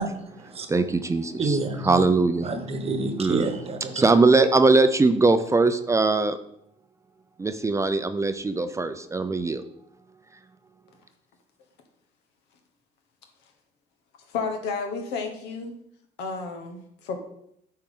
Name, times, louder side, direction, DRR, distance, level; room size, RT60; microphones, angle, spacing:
voice 1, 0.0-0.7 1.4-2.1 2.4-4.2, right 3 dB, 35° right, 7 dB, 1.0 m, -29 dB
voice 2, 0.7-1.6 1.8-2.5 3.2-3.5 3.9-6.4 7.4-9.6, right 3 dB, 15° right, 9 dB, 0.5 m, -21 dB
voice 3, 14.3-15.7 16.2-17.2, left 4 dB, 90° left, 5 dB, 1.3 m, -31 dB
9.0 x 4.4 x 3.7 m, 0.74 s
cardioid pair, 110°, 17 cm